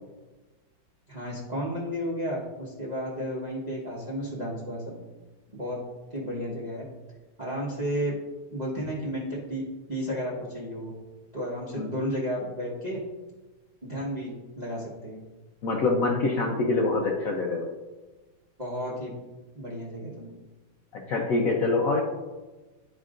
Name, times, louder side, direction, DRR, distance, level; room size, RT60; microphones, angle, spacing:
voice 1, 1.1-5.0 5.5-5.8 6.1-6.8 7.4-8.1 8.5-9.6 9.9-10.9 11.3-13.0 13.8-14.3 14.6-15.2 18.6-19.1 19.5-20.3, equal, 30° right, -6 dB, 0.9 m, -32 dB
voice 2, 15.6-17.7 20.9-22.0, left 3 dB, 65° left, -1 dB, 0.8 m, -25 dB
11.5 x 4.5 x 2.5 m, 1.2 s
omnidirectional pair, 2.3 m